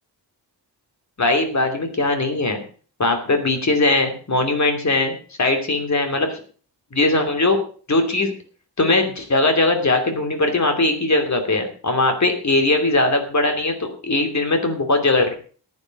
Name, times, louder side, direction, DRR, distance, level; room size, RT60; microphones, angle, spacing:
voice 1, 1.2-2.6 3.0-6.4 6.9-7.6 7.9-8.3 8.8-15.3, left 2 dB, 40° left, 5 dB, 2.8 m, -20 dB
14.5 x 9.6 x 5.3 m, 0.41 s
wide cardioid pair, 160°, 42 cm